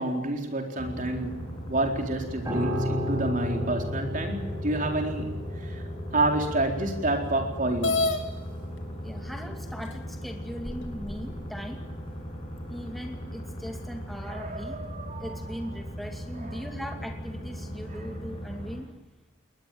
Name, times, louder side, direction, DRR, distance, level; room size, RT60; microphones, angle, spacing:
voice 1, 0.0-5.8 6.1-8.1 14.2-15.3 16.4-16.6, right 2 dB, 40° right, 4 dB, 4.2 m, -29 dB
sound 1, 0.8-18.8, equal, 25° left, 6.6 m, -38 dB
Piano, 2.4-11.8 12.1-12.4, left 1 dB, 20° right, 6.0 m, -35 dB
sound 2, 7.8-8.2 9.2-9.3 9.9-10.0 10.6-11.3, left 3 dB, 70° left, 3.2 m, -27 dB
voice 2, 9.0-11.8 12.7-14.8 15.2-18.9, equal, ahead, 3 dB, 2.5 m, -39 dB
21.5 x 20.5 x 9.3 m, 1.1 s
head